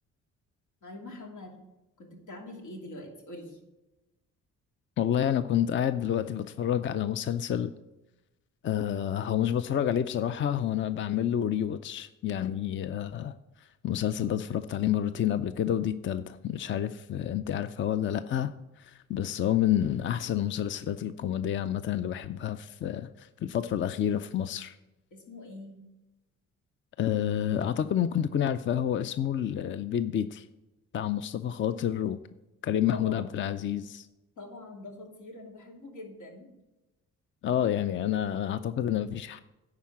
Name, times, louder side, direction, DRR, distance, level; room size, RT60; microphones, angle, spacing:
voice 1, 0.8-1.5 2.0-3.6 25.1-25.8 32.9-33.5 34.4-36.5, left 2 dB, 80° left, 1 dB, 2.7 m, -44 dB
voice 2, 5.0-7.7 8.6-18.5 18.8-24.8 27.0-30.5 30.9-32.2 32.6-34.1 37.4-39.4, left 10 dB, 40° left, 12 dB, 0.4 m, -29 dB
10.5 x 4.8 x 7.3 m, 1.0 s
cardioid pair, 90°, 30 cm